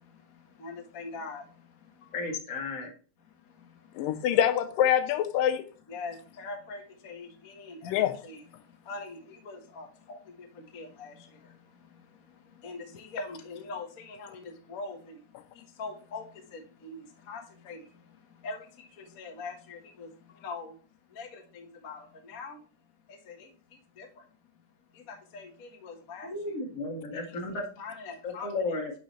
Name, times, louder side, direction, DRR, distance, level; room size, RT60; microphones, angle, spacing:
voice 1, 0.6-1.4 5.9-8.4 8.9-9.2 9.4-10.2 10.7-11.1 12.6-15.0 15.8-16.2 16.5-17.8 18.4-18.6 19.2-20.1 20.4-20.7 21.2-22.6 23.3-23.4 24.0-24.1 25.3-26.3 27.8-28.5, left 3 dB, 60° left, 0.9 m, -41 dB
voice 2, 2.1-2.9 26.3-27.6 28.2-28.9, left 3 dB, 35° left, 1.6 m, -33 dB
voice 3, 4.0-5.7 7.8-8.2, left 10 dB, 85° left, 2.4 m, -25 dB
10.0 x 5.0 x 3.1 m
omnidirectional pair, 3.8 m